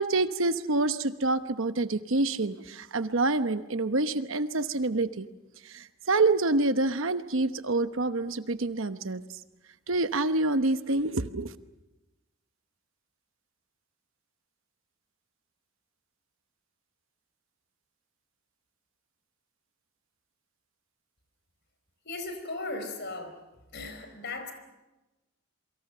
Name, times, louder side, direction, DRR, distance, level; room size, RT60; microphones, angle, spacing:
voice 1, 0.0-5.3 5.6-9.2 9.9-11.5, right 2 dB, 65° right, 11 dB, 1.0 m, -27 dB
voice 2, 22.0-23.4 23.7-24.5, left 2 dB, 50° left, 8 dB, 4.5 m, -37 dB
27.5 x 24.0 x 6.8 m, 1.0 s
head